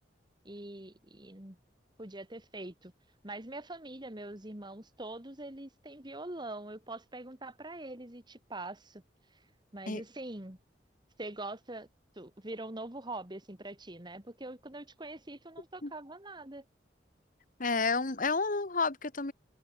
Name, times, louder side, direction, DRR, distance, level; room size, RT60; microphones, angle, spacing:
voice 1, 0.4-1.6 2.0-2.9 3.2-9.0 9.7-10.6 11.2-11.9 12.2-16.6, right 2 dB, 25° right, 2.8 m, -43 dB
voice 2, 17.6-19.3, left 4 dB, 50° left, 1.7 m, -30 dB
head